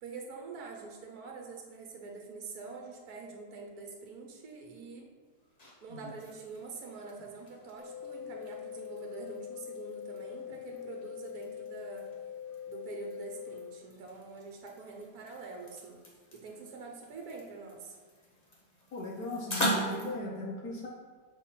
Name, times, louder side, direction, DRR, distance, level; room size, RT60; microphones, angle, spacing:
voice 1, 0.0-5.1 5.8-12.1 12.7-16.0 16.3-17.9, right 4 dB, 70° right, 1 dB, 1.6 m, -45 dB
sound 1, 5.2-20.1, right 1 dB, 30° left, 1.2 m, -42 dB
sound 2, 7.8-13.8, left 9 dB, 30° right, 1.6 m, -43 dB
voice 2, 18.9-20.9, left 2 dB, 70° left, -3 dB, 1.6 m, -38 dB
6.9 x 4.1 x 5.7 m, 1.4 s
omnidirectional pair, 1.7 m